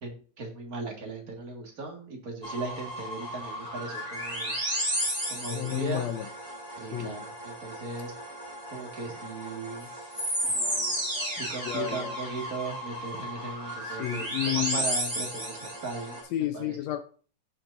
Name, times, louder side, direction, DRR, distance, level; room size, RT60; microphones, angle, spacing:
voice 1, 0.0-4.6 5.3-6.1 6.8-8.1 8.7-9.9 11.3-16.2 16.5-16.8, right 3 dB, 35° right, 1 dB, 1.8 m, -38 dB
sound 1, 2.4-16.2, equal, 10° right, 4.5 m, -33 dB
voice 2, 5.5-6.3 6.9-7.1 10.4-11.4 11.7-12.1 13.9-14.8 16.3-17.0, left 13 dB, 80° left, 9 dB, 1.5 m, -32 dB
16.0 x 5.9 x 2.6 m, 0.42 s
omnidirectional pair, 3.6 m